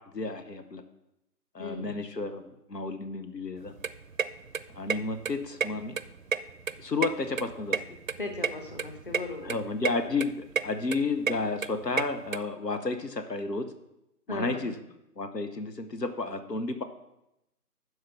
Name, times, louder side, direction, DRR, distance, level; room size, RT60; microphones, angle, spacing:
voice 1, 0.1-0.8 1.5-2.4 2.7-3.7 4.7-5.9 6.8-7.8 9.4-13.7 14.3-14.7 15.2-16.8, left 3 dB, 90° left, 8 dB, 1.1 m, -32 dB
voice 2, 1.6-1.9 8.2-9.6 14.3-14.8, left 2 dB, 35° left, 4 dB, 1.0 m, -37 dB
sound 1, 3.6-12.4, right 6 dB, 60° right, 0.5 m, -32 dB
11.5 x 4.8 x 5.8 m, 0.88 s
figure-of-eight pair, 155°, 47 cm